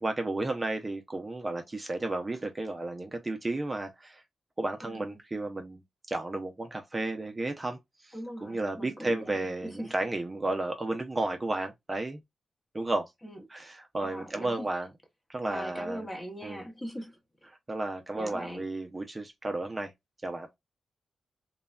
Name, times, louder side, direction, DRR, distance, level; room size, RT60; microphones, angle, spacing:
voice 1, 0.0-4.2 4.6-5.8 6.1-12.2 12.7-13.1 13.5-14.9 15.3-16.1 16.4-16.6 17.5-19.9 20.2-20.5, right 2 dB, 20° right, 0.5 m, -33 dB
voice 2, 4.8-5.1 8.1-9.9 13.2-13.4 14.0-14.7 15.4-17.1 18.1-18.6, equal, 15° left, 0.8 m, -40 dB
3.0 x 2.1 x 2.3 m
wide cardioid pair, 110°, 0 cm